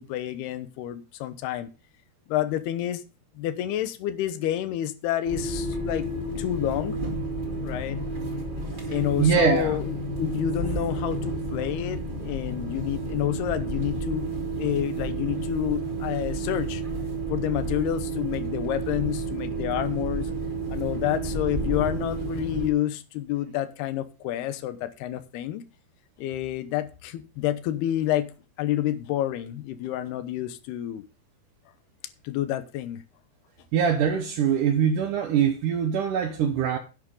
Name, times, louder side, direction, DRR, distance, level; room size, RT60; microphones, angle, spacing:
voice 1, 0.0-1.7 2.3-3.0 3.4-6.1 6.4-7.0 7.6-8.0 8.9-16.8 17.3-20.3 20.7-25.6 26.2-28.3 28.6-31.0 32.2-33.0, left 12 dB, 80° left, 2.8 m, -29 dB
sound 1, 5.2-22.7, right 2 dB, 30° right, 0.8 m, -31 dB
voice 2, 9.2-9.8 33.7-36.8, right 7 dB, 70° right, 2.1 m, -23 dB
11.0 x 8.9 x 3.8 m
omnidirectional pair, 4.7 m